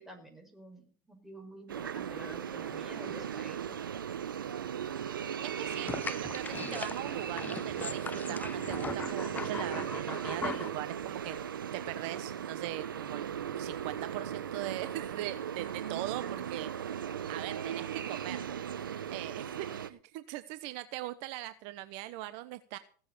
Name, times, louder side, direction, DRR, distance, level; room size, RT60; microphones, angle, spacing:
voice 1, 0.0-3.8, right 1 dB, 5° right, 3 dB, 5.8 m, -49 dB
sound 1, 1.7-19.9, right 9 dB, 90° right, 1.1 m, -37 dB
voice 2, 5.4-11.4 11.7-13.3 13.6-18.4 19.1-22.8, right 15 dB, 55° right, 12 dB, 1.0 m, -41 dB
sound 2, 5.7-10.7, left 5 dB, 15° left, 0.7 m, -40 dB
17.0 x 7.6 x 6.9 m, 0.42 s
hypercardioid pair, 105°, 11 cm